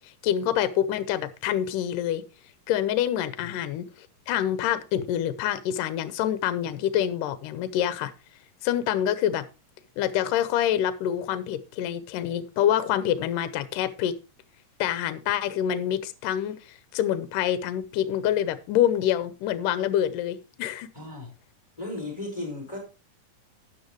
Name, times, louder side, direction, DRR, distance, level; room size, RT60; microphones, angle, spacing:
voice 1, 0.2-2.2 2.7-8.1 8.6-9.5 10.0-14.1 14.8-20.9, left 10 dB, 80° left, 13 dB, 2.3 m, -26 dB
voice 2, 20.9-21.3 21.8-22.8, left 2 dB, 10° left, -1 dB, 4.9 m, -35 dB
12.5 x 9.7 x 3.1 m, 0.30 s
omnidirectional pair, 4.0 m